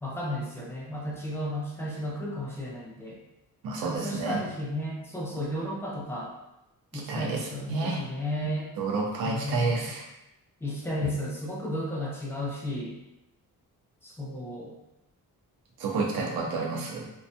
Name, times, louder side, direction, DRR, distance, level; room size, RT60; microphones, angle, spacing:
voice 1, 0.0-3.2 3.8-6.3 6.9-8.7 9.2-9.9 10.6-13.0 14.0-14.7, left 1 dB, 5° left, -4 dB, 0.6 m, -33 dB
voice 2, 3.6-4.4 6.9-8.1 8.8-10.0 15.8-17.1, right 3 dB, 80° right, 0 dB, 0.6 m, -30 dB
2.3 x 2.2 x 2.7 m, 0.92 s
cardioid pair, 115°, 36 cm